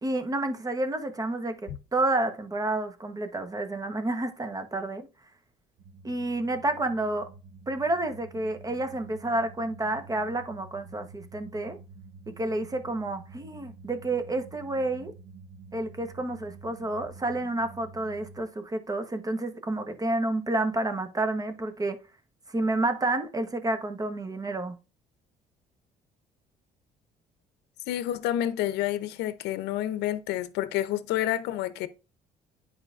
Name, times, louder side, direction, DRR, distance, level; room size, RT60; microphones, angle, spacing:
voice 1, 0.0-5.1 6.0-7.3 7.7-11.8 12.3-15.1 15.7-22.0 22.5-24.7, right 2 dB, 20° right, 1.0 m, -30 dB
sound 1, 5.8-18.4, right 4 dB, 55° right, 1.1 m, -49 dB
voice 2, 27.9-31.9, left 12 dB, 85° left, 0.6 m, -29 dB
9.8 x 4.7 x 2.5 m
cardioid pair, 110°, 17 cm